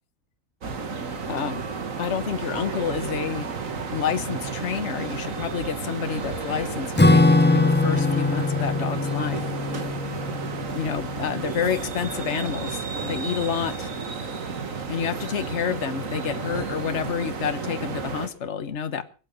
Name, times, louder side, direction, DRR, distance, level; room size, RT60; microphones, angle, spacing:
sound 1, 0.6-18.3, right 4 dB, 90° right, 2.1 m, -32 dB
voice 1, 1.3-1.6 2.0-3.5 3.9-9.4 10.7-13.9 14.9-19.0, left 7 dB, 60° left, 10 dB, 1.5 m, -29 dB
Acoustic guitar / Strum, 7.0-11.8, left 2 dB, 15° left, 0.4 m, -22 dB
23.0 x 9.0 x 5.6 m, 0.37 s
omnidirectional pair, 1.4 m